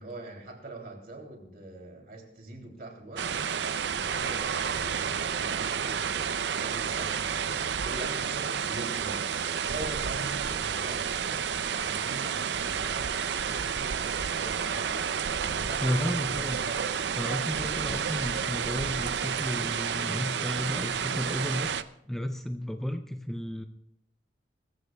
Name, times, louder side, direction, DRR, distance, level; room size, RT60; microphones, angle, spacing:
voice 1, 0.0-3.5 3.9-11.1 11.7-15.1 15.4-16.4, right 1 dB, 50° right, 1 dB, 3.0 m, -43 dB
sound 1, 3.2-21.8, right 7 dB, 70° right, 0.5 m, -30 dB
voice 2, 15.8-16.7 17.2-21.7 22.1-23.7, equal, ahead, 5 dB, 0.5 m, -33 dB
22.5 x 14.5 x 2.3 m, 0.76 s
head